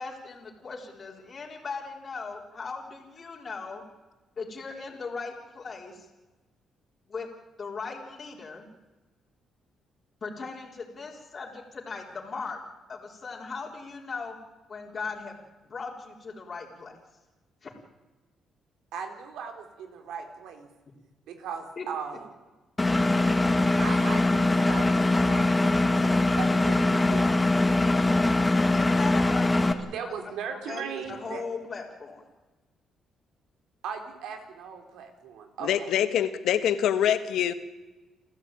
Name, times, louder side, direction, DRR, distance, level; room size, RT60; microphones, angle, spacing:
voice 1, 0.0-3.8 4.4-6.1 7.1-7.3 7.6-8.7 10.2-12.6 12.9-14.4 14.7-15.4 15.7-16.9 17.6-17.7 21.8-21.9 28.7-30.1 30.5-32.2, left 4 dB, 40° left, -1 dB, 3.8 m, -38 dB
voice 2, 18.9-20.7 21.3-22.3 23.8-27.3 29.9-31.4 33.8-35.9, right 6 dB, 85° right, 5 dB, 3.8 m, -38 dB
Engine, 22.8-29.7, left 2 dB, 15° left, 2.0 m, -22 dB
voice 3, 35.6-37.5, left 10 dB, 80° left, 11 dB, 1.6 m, -25 dB
29.0 x 14.0 x 8.9 m, 1.2 s
cardioid pair, 90°, 0 cm